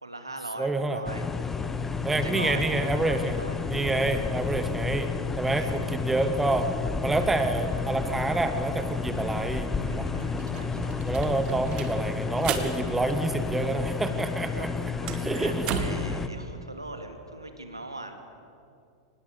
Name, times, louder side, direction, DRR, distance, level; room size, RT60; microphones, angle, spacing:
voice 1, 0.0-1.2 2.2-3.7 5.5-5.9 9.8-11.0 13.5-13.8 14.5-14.7 15.1-18.3, right 2 dB, 85° right, 6 dB, 2.4 m, -40 dB
voice 2, 0.6-1.0 2.0-3.4 3.7-5.1 5.4-6.7 7.0-10.1 11.0-14.7 15.1-15.8, right 2 dB, 10° right, 9 dB, 1.4 m, -28 dB
sound 1, 1.0-16.3, left 5 dB, 15° left, 1.2 m, -31 dB
sound 2, 9.6-9.7 10.0-13.9 14.2-16.1, right 7 dB, 35° right, 2.0 m, -35 dB
24.0 x 20.0 x 8.0 m, 2.5 s
figure-of-eight pair, 90°, 2 cm